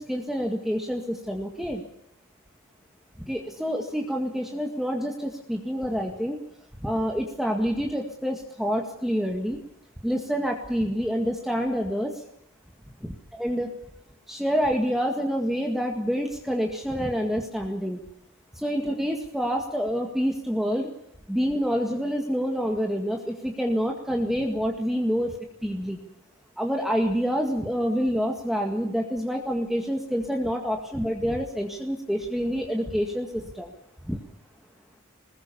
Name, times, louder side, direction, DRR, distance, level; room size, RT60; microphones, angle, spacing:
voice 1, 0.0-1.8 3.3-6.4 6.8-9.6 10.0-12.1 13.0-13.7 14.3-18.0 18.6-20.9 21.3-25.3 25.6-26.0 26.6-33.7 34.1-34.2, equal, ahead, 1 dB, 2.0 m, -27 dB
22.0 x 20.5 x 7.0 m, 0.78 s
head